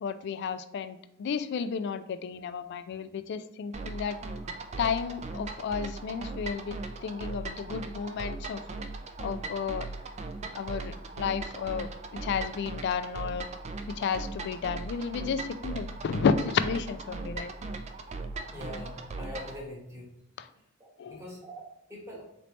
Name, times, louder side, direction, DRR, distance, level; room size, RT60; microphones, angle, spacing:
voice 1, 0.0-4.2 4.8-8.6 9.2-9.9 10.5-13.5 13.9-17.5 20.4-20.5 21.0-21.2, left 6 dB, 55° left, 11 dB, 0.3 m, -32 dB
sound 1, 3.7-19.6, right 3 dB, 30° right, 0.3 m, -38 dB
voice 2, 18.5-20.1 20.8-22.2, left 1 dB, 15° right, -4 dB, 1.3 m, -43 dB
3.9 x 3.2 x 3.0 m, 0.80 s
head